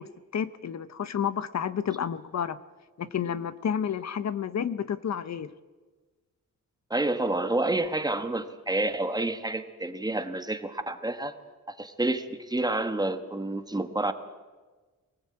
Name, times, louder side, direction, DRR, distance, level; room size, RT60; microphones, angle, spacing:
voice 1, 0.0-2.6 3.0-5.5, left 8 dB, 55° left, 15 dB, 0.8 m, -30 dB
voice 2, 6.9-11.3 11.7-14.1, right 2 dB, 10° right, 9 dB, 1.2 m, -29 dB
23.0 x 19.0 x 8.7 m, 1.3 s
wide cardioid pair, 170°, 32 cm